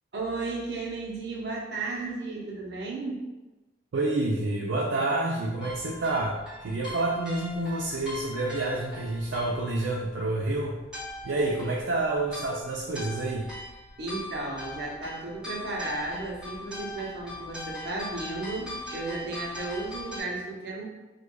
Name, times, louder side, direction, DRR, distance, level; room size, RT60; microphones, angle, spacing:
voice 1, 0.1-3.3 14.0-20.8, right 2 dB, 60° right, -3 dB, 0.8 m, -34 dB
voice 2, 3.9-6.4 6.6-10.8 11.2-13.5, right 2 dB, 85° right, -2 dB, 0.4 m, -28 dB
sound 1, 5.6-20.2, left 1 dB, 5° right, 1.2 m, -41 dB
4.6 x 2.3 x 2.2 m, 1.1 s
head